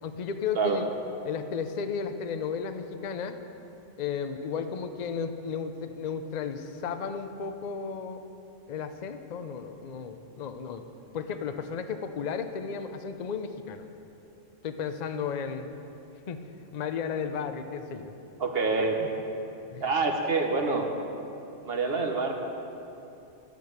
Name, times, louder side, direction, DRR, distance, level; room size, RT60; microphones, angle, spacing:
voice 1, 0.0-0.9 1.2-3.4 4.0-8.2 8.7-10.9 11.1-13.9 14.6-15.7 16.3-16.4 16.7-18.1 19.0-19.1 19.7-19.8, left 6 dB, 45° left, 8 dB, 0.6 m, -34 dB
voice 2, 18.4-19.0 19.8-20.9 21.6-22.3, right 4 dB, 55° right, 3 dB, 1.3 m, -26 dB
10.5 x 8.3 x 7.9 m, 2.9 s
omnidirectional pair, 1.3 m